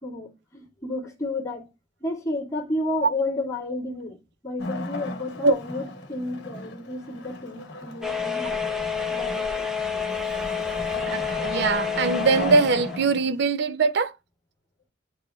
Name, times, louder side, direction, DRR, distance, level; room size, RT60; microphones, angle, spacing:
voice 1, 0.0-1.7 2.0-4.2 4.4-8.6 9.1-9.7, left 2 dB, 15° left, 2.3 m, -31 dB
Wood, 4.6-13.5, left 2 dB, 55° left, 1.2 m, -36 dB
sound 1, 8.0-13.0, left 6 dB, 5° right, 1.0 m, -29 dB
voice 2, 11.1-14.1, right 4 dB, 55° right, 0.5 m, -22 dB
9.7 x 4.7 x 2.4 m
head